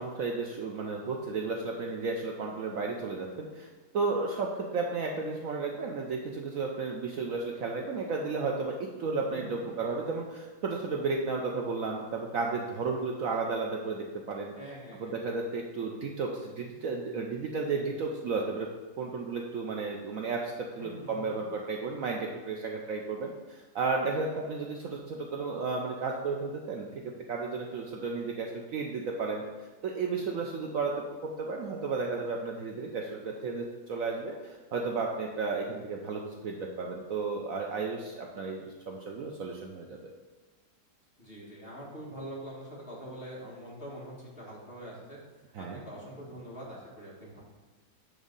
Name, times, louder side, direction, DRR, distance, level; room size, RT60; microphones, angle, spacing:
voice 1, 0.0-3.7 3.9-14.5 14.9-18.7 19.0-29.4 29.8-40.1 45.5-45.8, right 4 dB, 65° right, 1 dB, 0.9 m, -33 dB
voice 2, 9.3-9.7 14.6-15.2 20.8-21.4 41.2-45.2 45.6-47.4, equal, 35° left, -5 dB, 2.0 m, -44 dB
8.0 x 3.7 x 5.2 m, 1.3 s
omnidirectional pair, 1.8 m